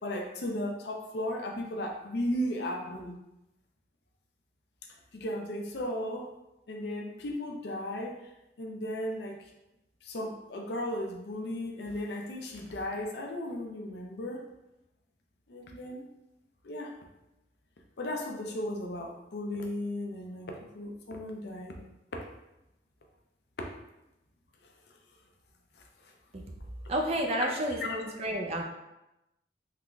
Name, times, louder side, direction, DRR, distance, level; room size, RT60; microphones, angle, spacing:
voice 1, 0.0-3.2 5.1-6.3 6.7-8.3 8.6-9.5 10.0-14.4 15.5-16.0 16.6-16.9 18.0-21.8 26.0-26.1 27.4-27.5 27.8-28.3, left 1 dB, 60° left, 1 dB, 0.5 m, -35 dB
voice 2, 26.9-28.6, right 1 dB, 35° right, 1 dB, 0.4 m, -30 dB
3.7 x 3.0 x 2.3 m, 0.93 s
head